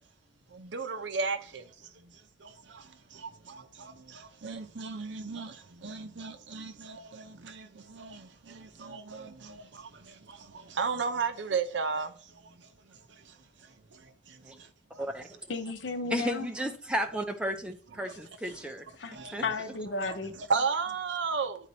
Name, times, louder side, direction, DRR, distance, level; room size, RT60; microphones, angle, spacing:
voice 1, 0.7-1.4 4.4-5.5 5.8-6.7 8.9-9.0 10.8-12.1 20.5-21.6, right 5 dB, 80° right, 0.7 m, -31 dB
voice 2, 15.0-15.4 16.1-18.8 19.3-19.4, right 1 dB, 5° right, 0.6 m, -33 dB
voice 3, 15.5-16.5 19.0-20.3, left 3 dB, 85° left, 0.8 m, -34 dB
10.0 x 4.2 x 2.8 m
head